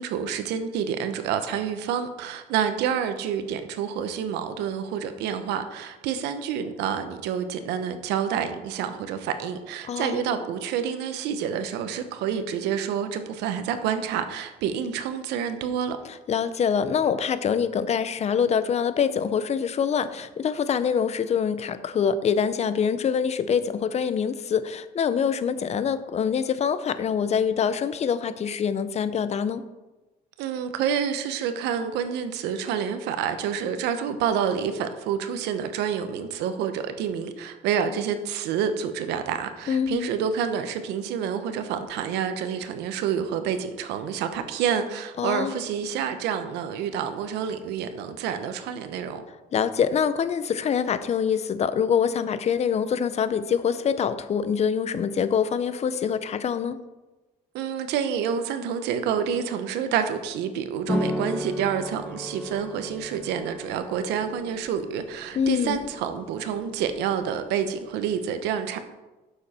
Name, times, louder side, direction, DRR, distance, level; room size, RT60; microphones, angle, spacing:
voice 1, 0.0-16.0 30.4-49.2 57.5-68.8, right 8 dB, 90° right, 9 dB, 0.9 m, -28 dB
voice 2, 9.9-10.2 16.3-29.6 39.7-40.1 45.2-45.6 49.5-56.8 65.3-65.8, left 7 dB, 40° left, 13 dB, 0.6 m, -25 dB
sound 1, 60.9-68.2, left 1 dB, 5° left, 0.8 m, -35 dB
9.5 x 7.1 x 4.3 m, 1.1 s
cardioid pair, 110°, 17 cm